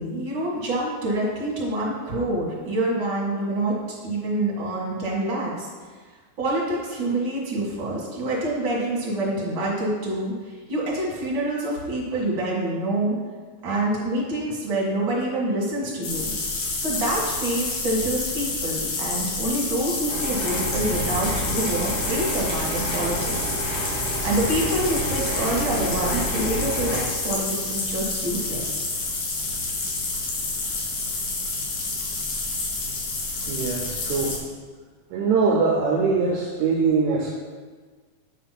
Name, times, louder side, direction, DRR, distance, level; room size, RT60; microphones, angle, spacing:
voice 1, 0.0-3.7 4.0-5.7 6.4-10.3 10.7-13.2 13.6-16.3 16.8-23.3 24.2-28.8, right 1 dB, 45° right, -5 dB, 2.3 m, -26 dB
sound 1, 16.0-34.4, left 3 dB, 75° left, 2.7 m, -29 dB
sound 2, 20.1-27.0, right 1 dB, 20° left, 1.1 m, -30 dB
voice 2, 33.5-34.4 35.1-37.4, right 4 dB, 75° right, -1 dB, 1.8 m, -22 dB
8.4 x 3.4 x 5.8 m, 1.5 s
omnidirectional pair, 3.8 m